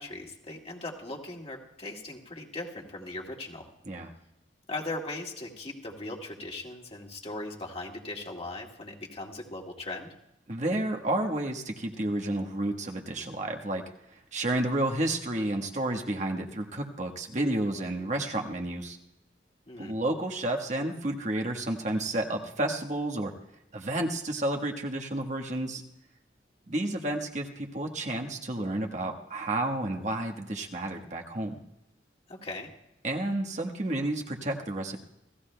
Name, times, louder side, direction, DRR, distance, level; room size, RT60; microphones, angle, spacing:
voice 1, 0.0-3.7 4.7-10.1 19.7-19.9 32.3-32.7, left 2 dB, 35° left, -1 dB, 2.1 m, -39 dB
voice 2, 10.5-13.8 14.3-19.0 19.8-23.3 23.7-25.8 26.7-31.5 33.0-35.0, right 1 dB, 45° right, 2 dB, 1.3 m, -31 dB
28.0 x 16.0 x 2.2 m, 0.85 s
head